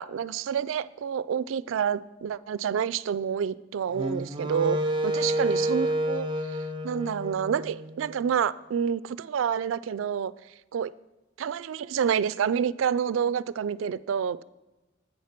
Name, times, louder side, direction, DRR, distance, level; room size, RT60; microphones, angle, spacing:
voice 1, 0.0-6.3 6.8-10.3 10.7-10.9 11.4-14.4, right 7 dB, 85° right, 0.3 m, -28 dB
Wind instrument woodwind instrument, 3.9-8.2, right 1 dB, 25° right, 0.5 m, -29 dB
8.8 x 7.4 x 5.8 m
head